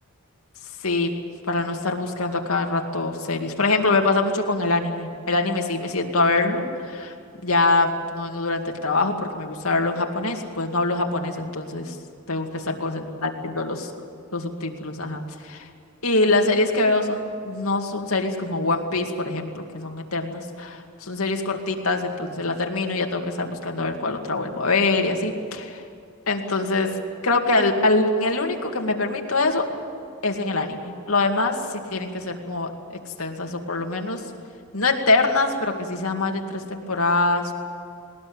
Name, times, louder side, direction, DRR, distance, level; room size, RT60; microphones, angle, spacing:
voice 1, 1.5-7.1 7.4-12.0 12.3-13.9 14.3-15.7 16.0-25.8 26.3-26.9 27.2-29.7 30.2-32.7 33.2-34.2 34.7-37.5, left 3 dB, 75° left, 2 dB, 2.3 m, -24 dB
20.0 x 19.5 x 8.9 m, 2.4 s
head